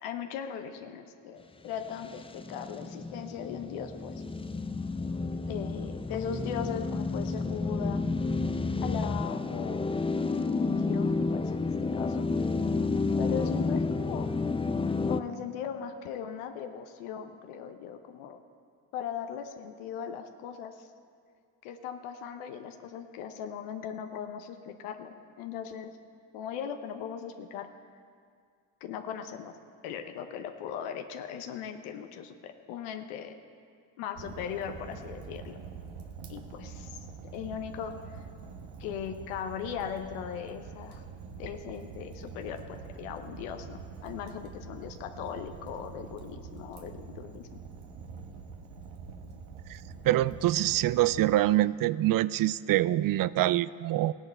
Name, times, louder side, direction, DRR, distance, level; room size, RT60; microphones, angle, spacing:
voice 1, 0.0-4.2 5.5-8.0 8.8-10.0 10.6-12.3 13.2-14.3 15.1-18.4 18.9-20.9 21.6-25.9 26.3-27.7 28.8-29.5 29.8-33.3 34.0-35.6 36.3-37.0 37.3-38.2 38.8-41.0 41.4-47.5, left 8 dB, 80° left, 6 dB, 0.9 m, -39 dB
sound 1, 1.9-15.2, left 3 dB, 10° left, 0.4 m, -30 dB
Fire, 34.2-51.4, right 5 dB, 75° right, 1.2 m, -45 dB
voice 2, 50.0-54.1, right 14 dB, 45° right, 19 dB, 0.4 m, -25 dB
16.5 x 10.5 x 4.4 m, 2.2 s
hypercardioid pair, 55°, 50 cm